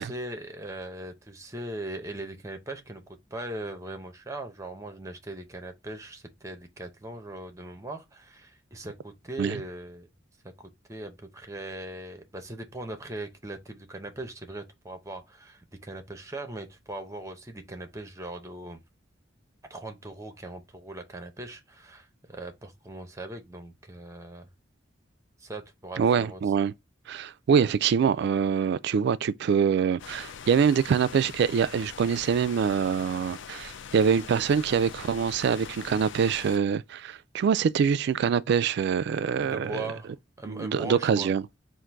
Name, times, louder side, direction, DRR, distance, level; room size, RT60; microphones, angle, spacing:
voice 1, 0.0-3.0 3.3-10.1 10.4-18.8 19.7-24.5 25.4-26.6 27.6-27.8 39.4-41.3, right 1 dB, 15° right, 0.7 m, -40 dB
voice 2, 26.0-26.7 27.1-39.9 40.5-41.4, right 7 dB, 60° right, 0.3 m, -24 dB
sound 1, 30.0-36.6, left 7 dB, 65° left, 0.4 m, -43 dB
3.7 x 2.5 x 4.5 m
head